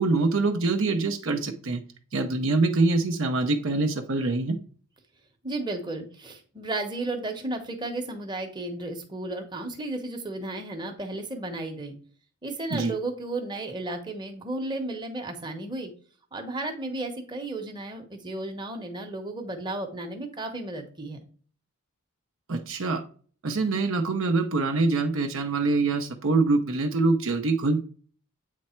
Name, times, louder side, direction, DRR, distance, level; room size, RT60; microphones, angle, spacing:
voice 1, 0.0-1.8 2.1-4.6 12.7-12.9 22.5-23.0 23.4-27.8, right 3 dB, 60° right, 5 dB, 0.6 m, -24 dB
voice 2, 5.4-11.9 12.4-15.9 16.3-21.2, right 2 dB, 20° right, 3 dB, 1.0 m, -33 dB
8.3 x 3.2 x 4.3 m, 0.44 s
head